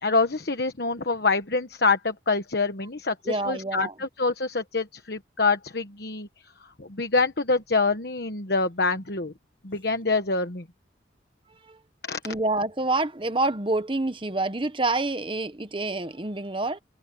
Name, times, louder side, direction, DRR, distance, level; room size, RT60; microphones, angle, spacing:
voice 1, 0.0-9.3 9.6-10.7 12.0-12.2, left 3 dB, 55° left, 1.3 m, -26 dB
voice 2, 3.2-3.9 11.6-11.8 12.2-16.8, right 2 dB, 25° right, 1.1 m, -27 dB
head